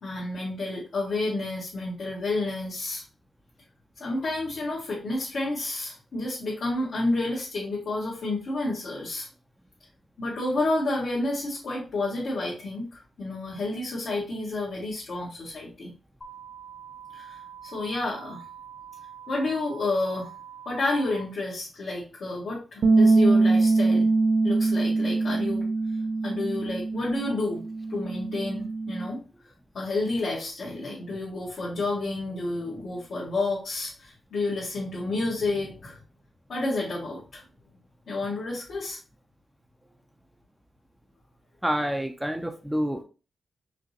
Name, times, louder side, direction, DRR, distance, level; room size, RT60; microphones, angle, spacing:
voice 1, 0.0-3.0 4.0-9.3 10.2-15.9 17.1-18.4 19.3-20.3 20.6-24.1 24.4-25.7 26.2-27.6 27.9-29.2 29.7-36.0 36.5-37.4 38.1-39.0, left 2 dB, 70° left, -7 dB, 1.6 m, -30 dB
sound 1, 16.2-21.2, right 8 dB, 30° left, 0.8 m, -45 dB
sound 2, 22.8-29.1, right 3 dB, 90° right, 0.5 m, -23 dB
voice 2, 41.6-43.0, equal, 5° right, 5 dB, 0.4 m, -28 dB
5.0 x 2.9 x 2.9 m, 0.34 s
wide cardioid pair, 125°, 0 cm